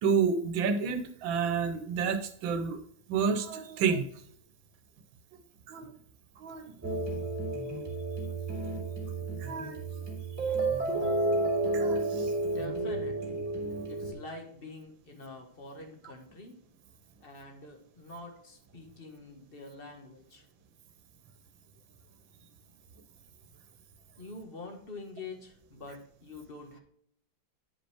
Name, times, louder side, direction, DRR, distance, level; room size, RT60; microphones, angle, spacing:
voice 1, 0.0-2.8 3.1-4.1 5.7-5.9 6.4-6.7 9.4-10.0 10.5-10.6 11.7-12.3, right 6 dB, 85° right, 8 dB, 1.7 m, -30 dB
sound 1, 6.8-14.1, right 2 dB, 10° right, 2.3 m, -31 dB
voice 2, 12.4-13.4 13.9-16.5 17.2-20.4 24.2-26.8, left 2 dB, 30° left, 3 dB, 1.6 m, -45 dB
10.5 x 5.2 x 3.4 m, 0.66 s
omnidirectional pair, 2.0 m